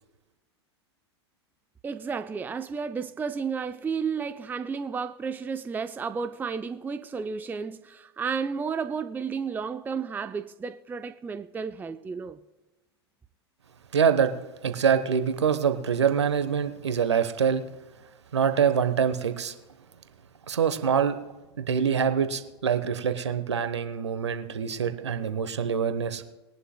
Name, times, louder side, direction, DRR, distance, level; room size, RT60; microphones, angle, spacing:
voice 1, 1.8-12.4, right 5 dB, 15° right, 0.5 m, -32 dB
voice 2, 13.9-14.3 14.6-17.6 18.3-19.5 20.5-21.2 21.6-26.2, right 7 dB, 80° right, 1.1 m, -25 dB
21.0 x 11.0 x 2.2 m
hypercardioid pair, 95°, 14 cm